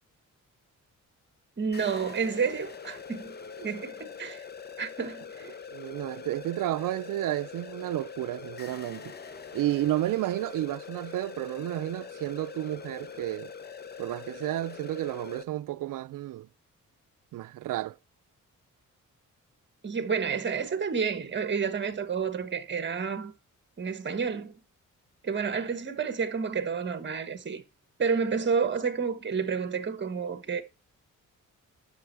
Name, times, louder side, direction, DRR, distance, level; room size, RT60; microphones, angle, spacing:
voice 1, 1.6-3.3 3.6-4.4 4.8-5.5 19.8-23.3 23.8-24.6 25.2-27.6 28.0-30.6, right 6 dB, 35° right, 1.5 m, -30 dB
sound 1, 1.7-15.4, left 6 dB, 30° left, 0.7 m, -43 dB
voice 2, 5.7-9.1 9.5-13.5 14.0-16.5 17.3-18.0, right 14 dB, 80° right, 0.5 m, -31 dB
11.5 x 6.4 x 4.7 m
wide cardioid pair, 130°, 32 cm